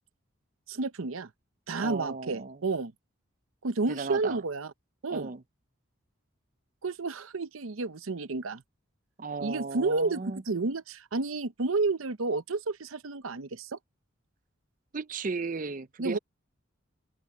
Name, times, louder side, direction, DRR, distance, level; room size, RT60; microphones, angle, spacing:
voice 1, 0.7-1.3 1.7-2.9 3.6-4.7 5.0-5.3 6.8-8.6 9.4-13.8 16.0-16.2, right 3 dB, 85° right, 0.8 m, -31 dB
voice 2, 1.8-2.6 3.9-4.4 5.1-5.4 9.2-10.4 14.9-16.2, right 4 dB, 40° right, 0.6 m, -35 dB
open air
head